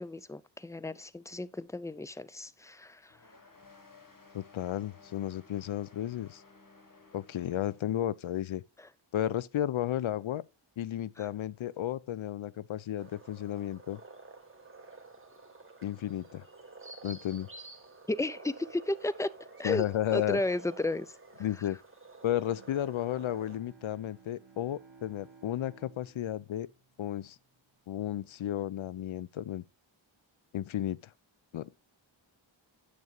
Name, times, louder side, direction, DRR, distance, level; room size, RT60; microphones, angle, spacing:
voice 1, 0.0-3.2 11.2-11.3 18.1-19.3 19.6-19.8 20.1-21.2, left 2 dB, 5° left, 0.3 m, -33 dB
sound 1, 3.1-8.2, left 4 dB, 40° left, 1.5 m, -57 dB
voice 2, 4.3-6.4 7.1-8.6 9.1-10.4 10.8-14.0 15.8-16.4 17.0-17.5 19.6-20.4 21.4-21.8 22.2-26.7 27.0-27.4 27.9-29.6 30.5-31.0 31.5-31.7, left 12 dB, 75° left, 0.5 m, -33 dB
sound 2, 13.0-23.6, right 3 dB, 25° right, 1.6 m, -50 dB
Bowed string instrument, 22.4-27.7, right 5 dB, 65° right, 1.9 m, -58 dB
9.4 x 6.9 x 2.3 m
wide cardioid pair, 70°, 49 cm